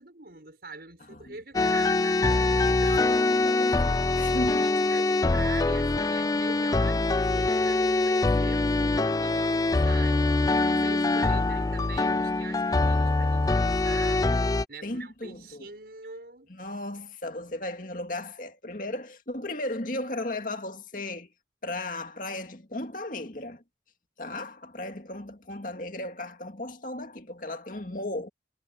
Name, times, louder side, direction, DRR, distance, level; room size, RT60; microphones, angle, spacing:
voice 1, 0.0-2.2 2.6-3.2 4.4-14.3 14.7-16.5, right 3 dB, 60° right, 6.7 m, -43 dB
sound 1, 1.5-14.6, left 2 dB, 20° left, 0.3 m, -24 dB
voice 2, 2.7-4.7 14.8-15.7 16.5-21.3 21.6-23.6 24.2-28.3, left 1 dB, 50° left, 2.3 m, -36 dB
head